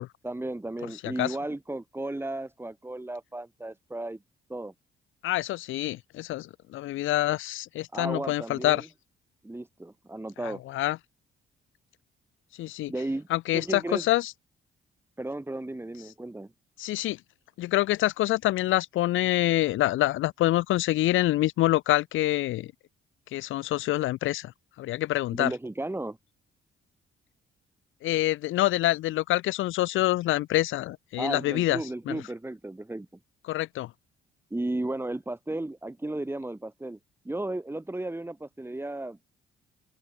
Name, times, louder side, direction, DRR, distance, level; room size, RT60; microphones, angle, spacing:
voice 1, 0.2-4.2 4.5-4.7 7.9-8.9 9.4-10.6 12.9-13.3 13.5-14.0 15.2-16.5 25.3-26.2 31.2-33.1 34.5-37.0 37.2-39.2, right 2 dB, 10° right, 5.6 m, -34 dB
voice 2, 1.0-1.3 5.2-8.9 10.4-11.0 12.6-12.9 13.3-14.3 16.8-17.2 17.6-22.7 23.3-24.5 24.8-25.5 28.0-31.8 32.1-32.2 33.5-33.9, left 15 dB, 90° left, 2.8 m, -26 dB
open air
cardioid pair, 90°, 20 cm